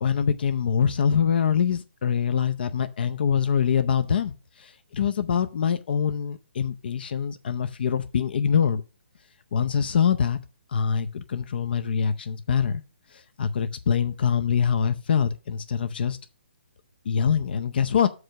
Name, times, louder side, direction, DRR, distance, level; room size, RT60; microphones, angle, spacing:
voice 1, 0.0-4.3 4.6-8.8 9.5-10.4 10.7-12.8 13.4-16.2 17.1-18.1, left 7 dB, 55° left, 0.6 m, -24 dB
6.6 x 4.9 x 5.7 m
hypercardioid pair, 155°, 6 cm